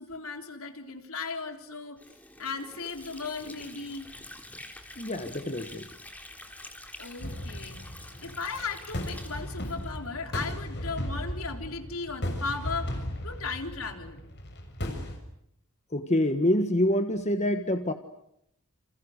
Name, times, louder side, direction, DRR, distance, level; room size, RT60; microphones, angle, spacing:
voice 1, 0.0-2.0 2.4-4.1 7.0-14.2, left 4 dB, 70° left, 5 dB, 3.9 m, -36 dB
Water / Sink (filling or washing), 2.0-10.5, left 1 dB, 5° left, 3.7 m, -47 dB
voice 2, 5.0-5.9 15.9-17.9, left 1 dB, 30° left, 7 dB, 1.5 m, -26 dB
sound 1, 7.2-15.2, equal, 50° left, 6.5 m, -36 dB
30.0 x 28.0 x 6.6 m, 0.76 s
head